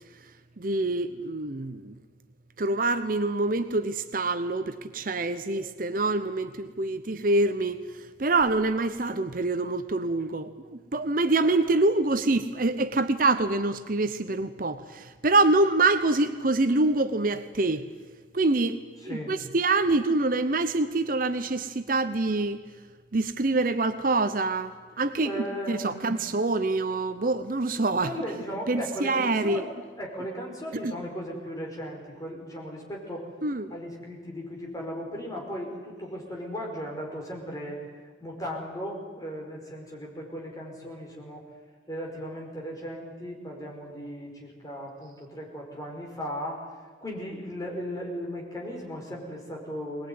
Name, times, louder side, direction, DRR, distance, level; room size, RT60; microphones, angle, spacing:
voice 1, 0.6-1.9 2.6-17.9 18.3-22.6 23.1-28.1 28.7-29.6 30.8-30.9 33.4-33.7, right 2 dB, 45° right, 0.8 m, -26 dB
voice 2, 19.0-19.3 25.1-26.2 28.0-29.7 30.0-33.3 33.7-37.8 38.2-41.4 41.9-46.6 47.0-50.1, equal, 20° left, 5.1 m, -36 dB
22.0 x 20.0 x 9.6 m
head